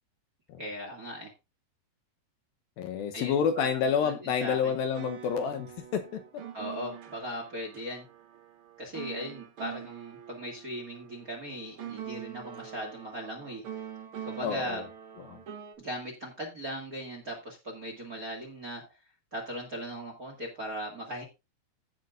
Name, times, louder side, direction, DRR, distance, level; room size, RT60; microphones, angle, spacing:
voice 1, 0.6-1.3 3.1-3.7 4.0-4.8 6.5-8.1 8.8-13.6 14.2-14.8 15.8-18.9 19.3-21.2, equal, 35° right, 1.6 m, -38 dB
voice 2, 2.8-6.4 14.4-14.8 15.3-15.4, left 7 dB, 70° left, 2.5 m, -29 dB
sound 1, 4.8-15.7, right 9 dB, 75° right, 1.2 m, -44 dB
16.0 x 7.1 x 2.5 m
omnidirectional pair, 4.7 m